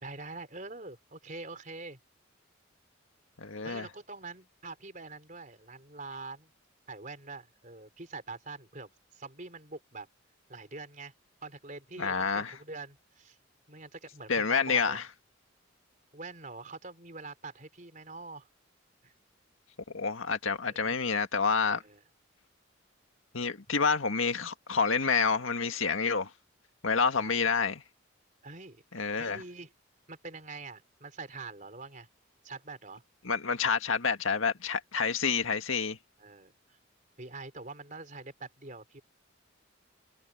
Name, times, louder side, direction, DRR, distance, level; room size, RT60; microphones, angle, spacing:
voice 1, 0.0-2.0 3.6-6.5 6.9-10.1 10.5-11.1 11.4-13.4 13.7-15.0 16.1-18.5 19.0-19.1 20.6-21.0 21.6-22.0 27.2-27.4 28.4-28.8 29.1-29.7 30.1-32.1 32.4-33.0 36.2-36.5 37.2-39.0, right 3 dB, 40° right, 4.0 m, -44 dB
voice 2, 3.4-3.9 12.0-12.5 14.3-15.0 19.9-21.8 23.3-26.3 26.8-27.8 28.9-29.4 33.2-36.0, left 5 dB, 85° left, 1.9 m, -28 dB
head